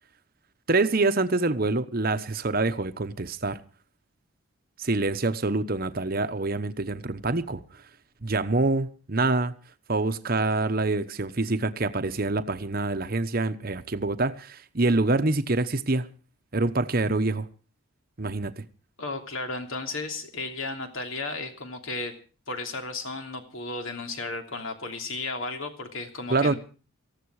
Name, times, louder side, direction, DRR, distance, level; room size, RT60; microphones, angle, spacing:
voice 1, 0.7-3.6 4.8-7.8 8.2-9.5 9.9-16.1 16.5-17.5 18.2-18.6 26.3-26.5, right 2 dB, 40° right, 1.0 m, -26 dB
voice 2, 19.0-22.2 22.5-26.6, left 3 dB, 65° left, 3.0 m, -34 dB
18.5 x 15.0 x 4.8 m
head